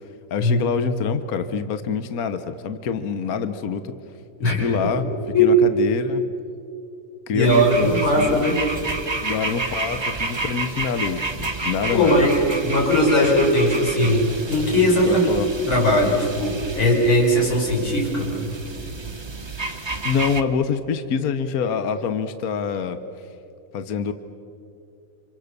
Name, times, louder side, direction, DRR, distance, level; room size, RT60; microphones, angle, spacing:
voice 1, 0.3-3.9 4.4-5.1 5.4-6.2 7.3-8.5 9.2-12.3 14.0-14.1 15.1-15.5 19.6-23.0 23.7-24.1, left 6 dB, 55° left, 10 dB, 1.2 m, -26 dB
voice 2, 4.4-4.9 5.3-5.8 7.3-8.6 11.9-15.3 15.7-18.5, equal, 70° left, -3 dB, 6.3 m, -19 dB
sound 1, 7.4-20.4, right 3 dB, 25° right, 0.6 m, -30 dB
30.0 x 26.5 x 6.7 m, 2.6 s
omnidirectional pair, 2.3 m